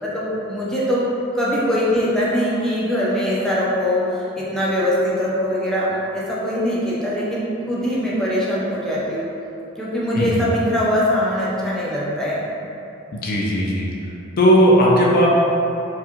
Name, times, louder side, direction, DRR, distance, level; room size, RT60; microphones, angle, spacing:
voice 1, 0.0-1.1 1.3-9.3 9.8-12.4, equal, 5° left, -8 dB, 0.6 m, -22 dB
voice 2, 13.1-13.9 14.4-15.3, equal, 50° left, -3 dB, 0.4 m, -16 dB
4.7 x 2.3 x 2.9 m, 2.9 s
head